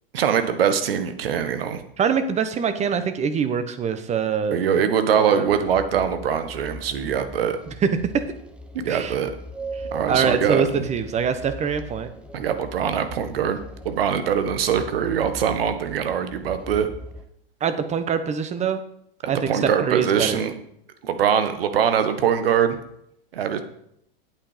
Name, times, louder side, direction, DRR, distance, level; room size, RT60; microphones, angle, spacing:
voice 1, 0.1-1.8 4.5-7.6 8.7-9.3 9.9-10.9 12.3-13.6 13.8-16.9 19.5-20.5 21.0-22.8 23.3-23.6, right 8 dB, 75° right, 9 dB, 1.5 m, -22 dB
voice 2, 2.0-4.6 5.2-5.6 7.8-7.9 8.1-8.2 8.9-9.1 10.1-12.1 17.6-18.8 19.2-20.4, right 6 dB, 25° right, 10 dB, 1.1 m, -24 dB
sound 1, 5.5-17.3, equal, 5° right, 0.9 m, -40 dB
8.8 x 8.7 x 5.1 m, 0.73 s
hypercardioid pair, 110°, 29 cm